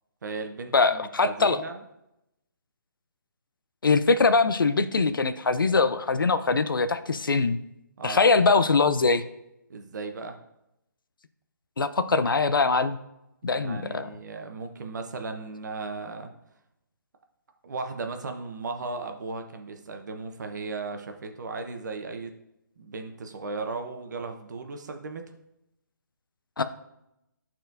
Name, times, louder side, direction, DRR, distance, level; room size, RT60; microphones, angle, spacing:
voice 1, 0.2-1.8 8.0-8.2 9.7-10.4 13.5-16.3 17.6-22.3 22.8-25.2, right 3 dB, 60° right, 5 dB, 1.0 m, -36 dB
voice 2, 0.7-1.6 3.8-7.6 8.0-9.2 11.8-13.0 13.4-14.1 26.6-26.7, left 4 dB, 85° left, 12 dB, 0.6 m, -22 dB
12.0 x 4.4 x 2.6 m, 0.85 s
figure-of-eight pair, 150°, 11 cm